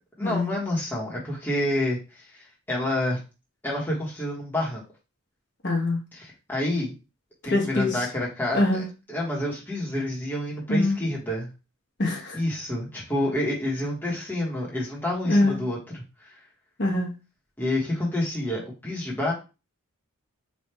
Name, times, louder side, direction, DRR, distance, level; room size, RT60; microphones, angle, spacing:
voice 1, 0.2-3.2 3.6-4.8 6.1-6.9 7.4-11.5 12.3-16.4 17.6-19.3, left 1 dB, 10° left, -5 dB, 1.1 m, -28 dB
voice 2, 5.6-6.0 7.4-8.0 8.5-8.9 10.7-11.0 12.0-12.4 15.3-15.6 16.8-17.1, left 2 dB, 50° left, -1 dB, 1.1 m, -23 dB
3.4 x 2.4 x 4.3 m, 0.30 s
head